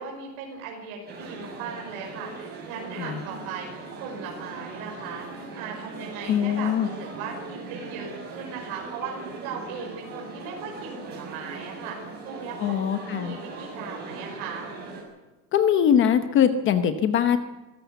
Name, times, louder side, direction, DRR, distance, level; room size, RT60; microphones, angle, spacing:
voice 1, 0.0-5.3 5.5-12.0 12.3-12.7 13.1-14.7, right 6 dB, 55° right, 0 dB, 5.4 m, -38 dB
sound 1, 1.1-15.0, right 3 dB, 25° right, 6.5 m, -39 dB
voice 2, 6.3-6.9 12.6-13.4 15.5-17.4, left 8 dB, 30° left, 9 dB, 0.9 m, -22 dB
23.0 x 14.5 x 8.2 m, 1.2 s
cardioid pair, 175°, 42 cm